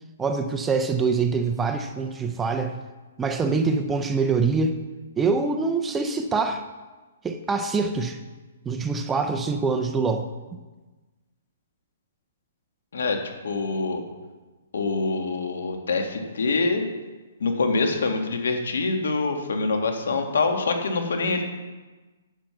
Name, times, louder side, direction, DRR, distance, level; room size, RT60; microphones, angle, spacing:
voice 1, 0.2-2.8 3.2-4.8 5.2-6.6 7.2-8.2 8.7-10.3, right 4 dB, 10° right, 6 dB, 0.5 m, -24 dB
voice 2, 12.9-14.0 14.7-16.9 17.4-21.4, left 3 dB, 85° left, 4 dB, 1.9 m, -25 dB
10.0 x 7.7 x 5.8 m, 1.2 s
hypercardioid pair, 170°, 0 cm